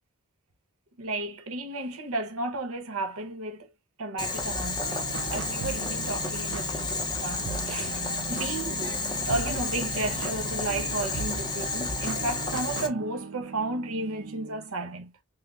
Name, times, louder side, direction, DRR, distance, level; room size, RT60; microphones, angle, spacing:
voice 1, 1.0-3.7 4.0-8.8 9.3-15.1, right 2 dB, 80° right, 0.9 m, -33 dB
Boiling, 4.2-12.9, left 3 dB, 20° left, 0.6 m, -31 dB
sound 1, 4.8-14.7, right 5 dB, 60° right, 0.3 m, -38 dB
5.8 x 2.1 x 2.4 m
head